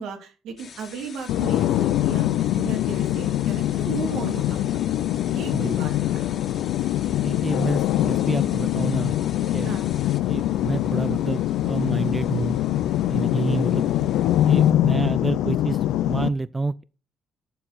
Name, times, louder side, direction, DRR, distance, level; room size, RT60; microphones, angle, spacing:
voice 1, 0.0-2.3 2.6-4.8 5.2-7.0 9.6-9.9 13.6-13.7, right 6 dB, 85° right, 2.3 m, -36 dB
sound 1, 0.6-14.7, left 6 dB, 55° left, 1.7 m, -46 dB
sound 2, 1.3-16.3, left 13 dB, 90° left, 0.4 m, -23 dB
voice 2, 5.5-5.8 7.2-9.1 9.5-9.7 10.3-12.6 13.1-13.9 14.5-16.8, right 3 dB, 20° right, 0.3 m, -28 dB
11.5 x 4.5 x 4.0 m
cardioid pair, 90°, 0 cm